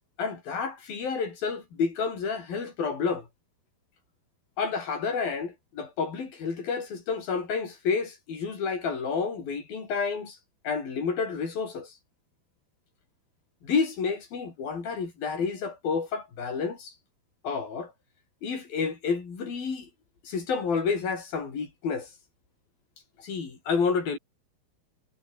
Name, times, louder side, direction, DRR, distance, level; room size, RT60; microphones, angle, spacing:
voice 1, 0.2-3.3 4.6-10.4 10.6-11.9 13.6-16.9 17.4-17.9 18.4-19.9 20.2-22.1 23.2-24.2, left 5 dB, 60° left, 6.7 m, -30 dB
omnidirectional pair, 4.8 m